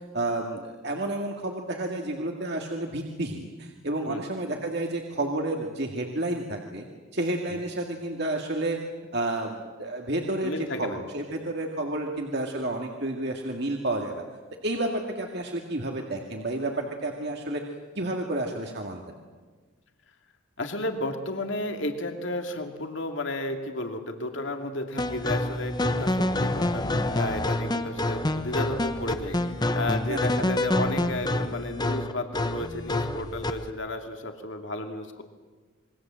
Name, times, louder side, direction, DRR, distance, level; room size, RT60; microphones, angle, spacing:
voice 1, 0.1-6.9 7.1-8.8 9.1-10.5 10.8-14.2 14.6-17.6 18.0-19.2 30.1-30.6, right 2 dB, 50° right, 1 dB, 2.2 m, -30 dB
voice 2, 10.4-11.0 20.6-35.2, left 2 dB, 60° left, 5 dB, 2.5 m, -33 dB
sound 1, 25.0-33.7, left 1 dB, 20° left, 1.0 m, -27 dB
27.0 x 23.0 x 7.7 m, 1.4 s
head